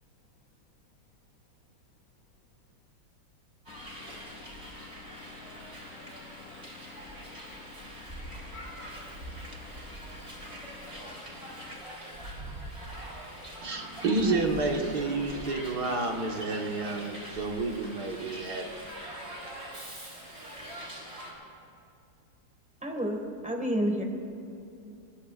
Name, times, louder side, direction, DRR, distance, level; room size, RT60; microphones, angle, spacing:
voice 1, 3.7-11.9, left 7 dB, 85° left, 7 dB, 0.7 m, -52 dB
Hiss, 3.7-21.3, right 1 dB, 30° right, 4.0 m, -43 dB
voice 2, 13.6-18.7, right 3 dB, 55° right, 1 dB, 2.0 m, -30 dB
voice 3, 22.8-23.2 23.4-24.0, equal, 5° right, 2 dB, 1.6 m, -29 dB
25.0 x 22.5 x 2.5 m, 2.7 s
omnidirectional pair, 2.1 m